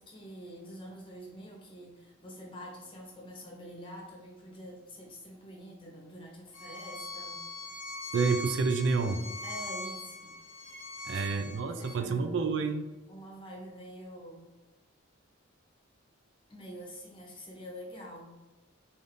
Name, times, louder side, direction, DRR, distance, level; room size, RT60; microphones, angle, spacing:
voice 1, 0.0-7.4 9.4-10.3 11.0-12.4 13.1-14.5 16.5-18.4, equal, 25° left, -1 dB, 0.9 m, -46 dB
Bowed string instrument, 6.5-12.0, left 2 dB, 70° left, 0.7 m, -41 dB
voice 2, 8.1-9.3 11.1-12.9, right 4 dB, 65° right, 7 dB, 0.4 m, -29 dB
3.4 x 2.6 x 3.7 m, 1.1 s
head